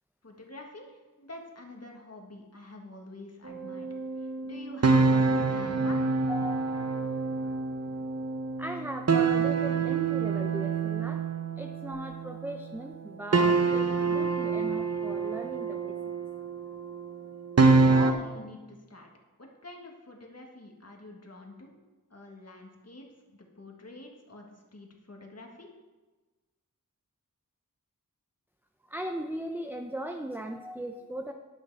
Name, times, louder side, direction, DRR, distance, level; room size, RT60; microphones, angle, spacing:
voice 1, 0.2-3.9 4.2-6.0 17.6-19.1 19.4-21.8 22.1-25.7, left 2 dB, 50° left, 1 dB, 1.8 m, -46 dB
sound 1, 3.5-12.7 13.3-18.1, right 4 dB, 50° right, 0.7 m, -26 dB
voice 2, 6.3-6.9 7.4-7.5 8.6-11.2 11.6-16.0 28.8-31.3, right 1 dB, 5° right, 4 dB, 0.6 m, -38 dB
10.5 x 6.3 x 4.8 m, 1.2 s
wide cardioid pair, 55°, 33 cm